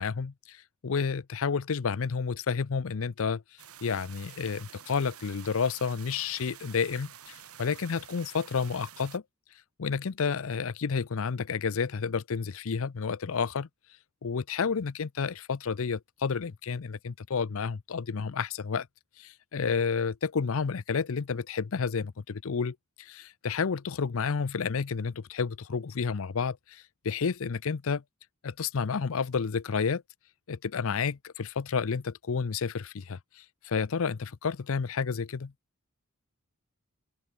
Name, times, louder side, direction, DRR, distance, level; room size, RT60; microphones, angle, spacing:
voice 1, 0.0-3.4 3.8-9.2 9.8-13.7 14.2-18.9 19.2-28.0 28.4-30.0 30.5-35.5, left 5 dB, 65° left, 0.5 m, -30 dB
sound 1, 3.6-9.2, right 9 dB, 80° right, 4.3 m, -49 dB
open air
head